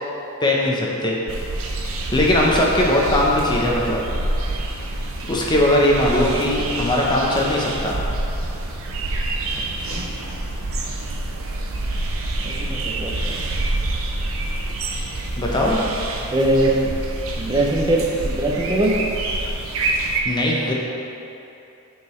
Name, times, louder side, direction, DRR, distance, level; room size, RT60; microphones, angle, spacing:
voice 1, 0.4-1.2 2.1-4.0 5.3-8.0 15.4-15.8 20.2-20.7, left 1 dB, 20° left, -3 dB, 0.7 m, -19 dB
sound 1, 1.3-20.2, right 2 dB, 65° right, 0.6 m, -27 dB
voice 2, 12.4-13.5 16.2-16.7 17.4-18.9, right 1 dB, 20° right, -2 dB, 0.5 m, -22 dB
8.6 x 4.7 x 3.1 m, 2.8 s
head